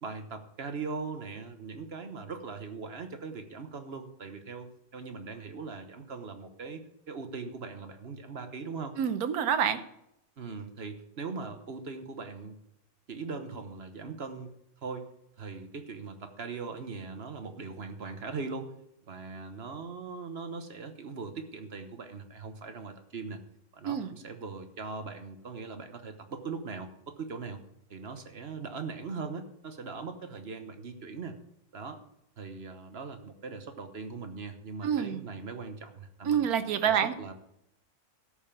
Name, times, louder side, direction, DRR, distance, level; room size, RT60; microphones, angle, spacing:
voice 1, 0.0-4.7 4.9-8.9 10.4-12.6 13.1-14.5 14.8-15.1 15.4-18.7 19.1-23.4 23.7-27.6 27.9-31.4 31.7-32.0 32.4-36.4 36.8-37.3, right 4 dB, 45° right, 7 dB, 1.2 m, -40 dB
voice 2, 9.0-9.8 23.8-24.1 34.8-35.2 36.2-37.1, right 8 dB, 80° right, 11 dB, 1.3 m, -27 dB
13.0 x 5.5 x 7.2 m, 0.78 s
omnidirectional pair, 1.6 m